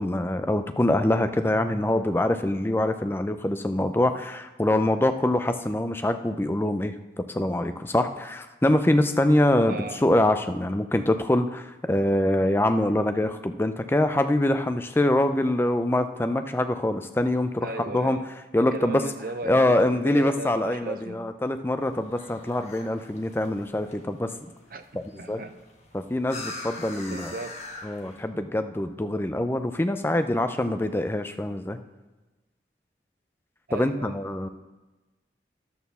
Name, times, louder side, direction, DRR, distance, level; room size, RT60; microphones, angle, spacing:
voice 1, 0.0-6.9 7.3-18.2 18.5-19.0 19.5-24.3 24.9-25.4 25.9-27.3 27.8-31.8 33.7-34.5, left 1 dB, 10° left, 8 dB, 0.4 m, -24 dB
voice 2, 9.7-10.0 17.6-18.2 18.7-21.3 24.7-25.5 27.1-27.6 33.7-34.1, right 3 dB, 50° right, 9 dB, 0.6 m, -36 dB
sound 1, 21.8-28.2, left 2 dB, 35° left, 1.3 m, -43 dB
11.0 x 4.3 x 6.8 m, 1.2 s
head